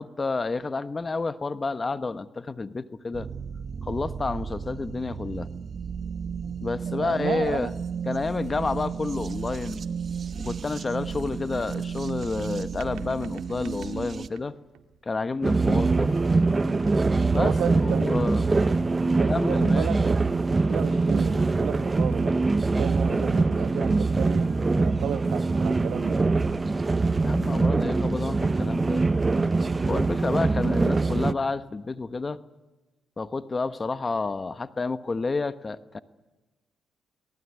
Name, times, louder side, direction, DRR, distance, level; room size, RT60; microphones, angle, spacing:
voice 1, 0.0-3.3 3.8-5.5 6.6-7.7 8.1-9.9 10.3-14.5 15.0-16.1 17.3-18.5 19.0-19.9 27.2-29.0 29.8-32.4 33.2-36.0, left 3 dB, 30° left, 1.1 m, -30 dB
sound 1, 3.1-14.3, right 6 dB, 45° right, 1.1 m, -34 dB
voice 2, 7.0-7.7 15.6-15.9 17.4-18.1 19.1-24.5 24.8-26.2, right 9 dB, 70° right, 1.1 m, -33 dB
sound 2, 10.9-15.0 15.4-17.8, right 10 dB, 90° right, 1.7 m, -47 dB
sound 3, 15.4-31.3, right 3 dB, 25° right, 0.8 m, -23 dB
24.5 x 18.5 x 9.8 m
cardioid pair, 90°, 0 cm